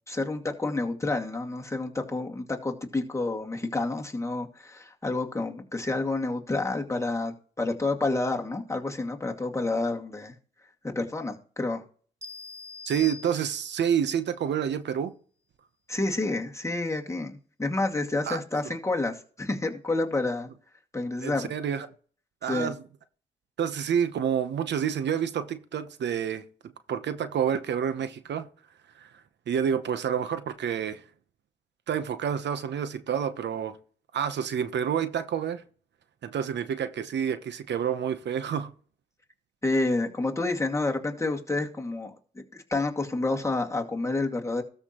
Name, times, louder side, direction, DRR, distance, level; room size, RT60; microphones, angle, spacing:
voice 1, 0.1-10.3 11.0-11.8 15.9-20.5 20.9-21.5 22.4-22.7 39.6-44.6, left 2 dB, 15° left, 2.1 m, -29 dB
sound 1, 12.2-14.0, left 4 dB, 15° right, 1.5 m, -43 dB
voice 2, 12.8-15.1 18.2-18.4 18.6-18.7 21.2-21.9 22.4-22.8 23.6-26.4 26.9-28.5 29.0-29.1 29.5-31.0 31.9-33.8 34.1-35.6 36.2-38.7, right 8 dB, 70° right, 0.9 m, -28 dB
13.0 x 5.7 x 3.0 m
cardioid pair, 80°, 19 cm